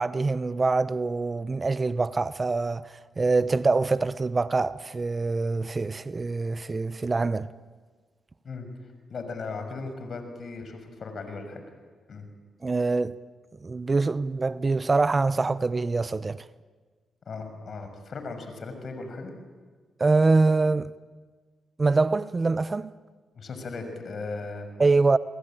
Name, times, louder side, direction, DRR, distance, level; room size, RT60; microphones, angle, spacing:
voice 1, 0.0-7.5 12.6-13.2 13.6-16.5 20.0-20.9 21.8-22.9 24.8-25.2, right 3 dB, 35° right, 0.8 m, -24 dB
voice 2, 9.1-11.6 12.1-12.3 17.3-19.3 23.3-24.7, left 3 dB, 60° left, 6.5 m, -37 dB
29.0 x 21.5 x 9.1 m
supercardioid pair, 60°, 0 cm